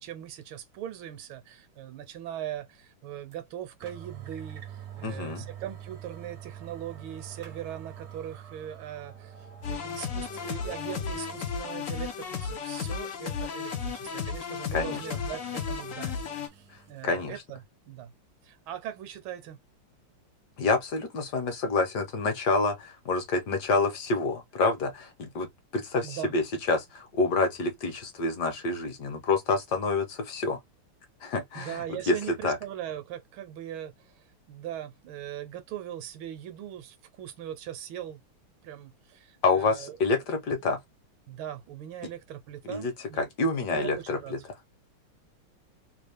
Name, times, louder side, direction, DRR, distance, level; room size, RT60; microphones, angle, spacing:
voice 1, 0.0-9.3 9.7-17.6 17.9-18.1 18.4-19.6 26.0-26.3 31.5-34.1 34.5-38.2 38.6-40.0 41.3-43.3 43.7-44.3, right 11 dB, 75° right, 1.5 m, -40 dB
sound 1, 3.3-3.4 3.8-11.4 11.8-11.9 14.4-17.0, right 10 dB, 55° right, 0.7 m, -46 dB
voice 2, 5.0-5.5 14.7-15.1 17.0-17.3 20.6-25.5 25.7-30.6 31.2-32.2 32.4-32.6 39.4-40.8 42.6-42.9 43.2-44.4, left 3 dB, 60° left, 1.3 m, -27 dB
sound 2, 9.6-16.5, left 6 dB, 80° left, 0.7 m, -34 dB
3.5 x 2.4 x 3.2 m
omnidirectional pair, 2.4 m